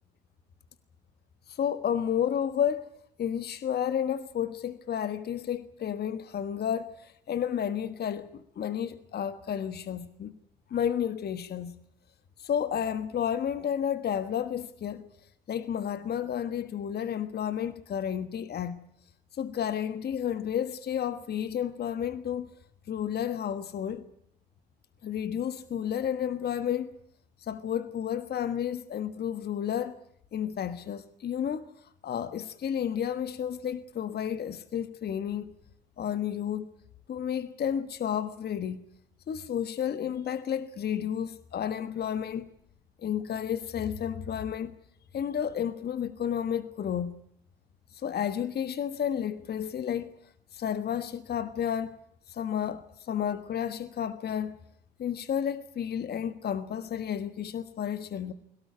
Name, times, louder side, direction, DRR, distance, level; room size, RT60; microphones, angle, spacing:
voice 1, 1.5-2.9 3.2-10.3 10.7-11.7 12.4-15.1 15.5-18.8 19.3-22.5 22.9-24.1 25.0-27.0 27.4-30.0 30.3-31.7 32.0-35.6 36.0-36.7 37.1-38.8 39.3-42.5 43.0-44.7 45.1-47.1 47.9-50.1 50.5-51.9 52.3-54.6 55.0-58.3, left 9 dB, 50° left, 1.4 m, -31 dB
22.5 x 17.5 x 9.5 m
hypercardioid pair, 45°, 21 cm